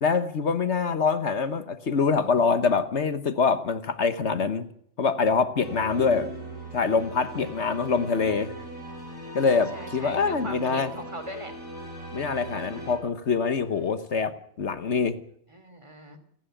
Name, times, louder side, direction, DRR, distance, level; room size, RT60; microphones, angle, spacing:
voice 1, 0.0-4.7 5.0-6.3 6.7-8.5 9.3-10.9 12.1-15.2, left 5 dB, 65° left, 11 dB, 1.4 m, -25 dB
sound 1, 5.6-13.0, right 1 dB, 85° left, 8.0 m, -39 dB
voice 2, 9.4-11.5 12.7-12.9 13.6-14.0 15.5-16.2, equal, 25° right, 8 dB, 3.1 m, -40 dB
28.5 x 11.0 x 9.1 m, 0.68 s
omnidirectional pair, 1.3 m